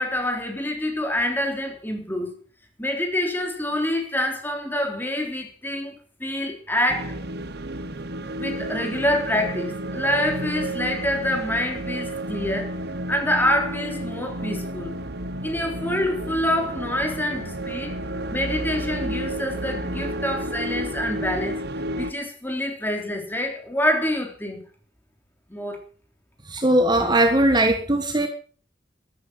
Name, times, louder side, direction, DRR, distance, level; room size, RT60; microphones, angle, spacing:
voice 1, 0.0-2.3 2.8-6.0 6.2-7.2 8.4-12.7 13.1-15.0 15.4-18.0 18.3-21.6 21.9-24.6 25.5-25.8, left 1 dB, 10° left, 3.5 m, -26 dB
sound 1, 6.9-22.1, right 1 dB, 60° right, 1.2 m, -31 dB
voice 2, 26.5-28.3, right 1 dB, 25° right, 1.5 m, -19 dB
13.5 x 12.5 x 6.2 m
head